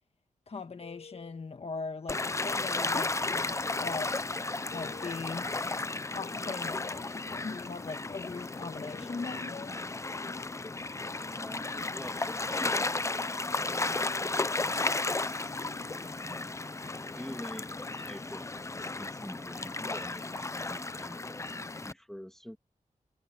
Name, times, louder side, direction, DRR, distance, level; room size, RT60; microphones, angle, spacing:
voice 1, 0.5-4.3 4.7-5.5 6.1-9.8, left 4 dB, 45° left, 1.5 m, -40 dB
sound 1, 0.8-17.2, left 6 dB, 85° left, 2.9 m, -55 dB
Gull seagull / Waves surf, 2.1-21.9, left 3 dB, 20° left, 0.5 m, -34 dB
voice 2, 11.2-12.9 13.3-15.5 16.1-16.7 17.0-21.5 21.8-22.6, equal, 5° left, 2.1 m, -47 dB
wide cardioid pair, 105°, 14 cm